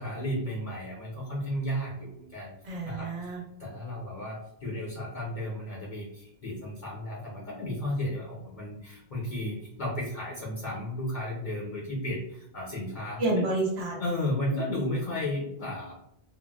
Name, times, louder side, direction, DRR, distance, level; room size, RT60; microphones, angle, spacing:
voice 1, 0.0-2.5 2.8-3.1 3.6-13.4 14.0-15.9, left 1 dB, 50° left, -4 dB, 0.8 m, -33 dB
voice 2, 2.6-3.4 13.2-14.0, right 2 dB, 80° right, -2 dB, 1.1 m, -29 dB
3.8 x 2.1 x 2.2 m, 0.78 s
omnidirectional pair, 1.1 m